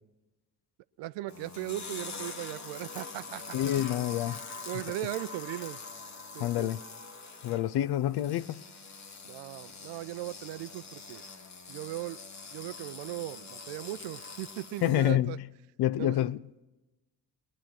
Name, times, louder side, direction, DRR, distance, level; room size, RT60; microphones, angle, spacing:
voice 1, 1.0-3.9 4.7-5.8 6.3-6.7 9.2-11.2 11.7-12.2 12.5-15.4 16.0-16.3, right 16 dB, 65° right, 0.6 m, -38 dB
sound 1, 1.3-15.1, left 4 dB, 35° left, 1.5 m, -44 dB
voice 2, 3.5-4.4 6.4-6.8 7.4-8.6 14.8-15.4 15.8-16.4, left 12 dB, 55° left, 0.6 m, -27 dB
21.5 x 11.0 x 5.9 m
hypercardioid pair, 50°, 47 cm